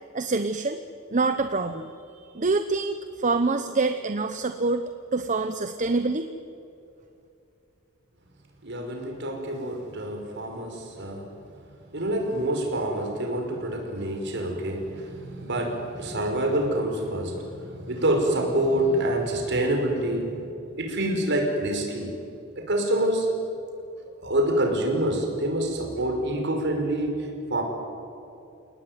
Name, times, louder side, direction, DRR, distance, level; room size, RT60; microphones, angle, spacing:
voice 1, 0.1-0.8 1.1-6.3, right 3 dB, 35° right, 8 dB, 0.9 m, -26 dB
voice 2, 8.6-11.3 11.9-20.3 20.8-22.1 22.6-23.3 24.2-27.3 27.5-27.6, right 1 dB, 55° right, 2 dB, 5.6 m, -26 dB
30.0 x 18.5 x 9.7 m, 2.7 s
head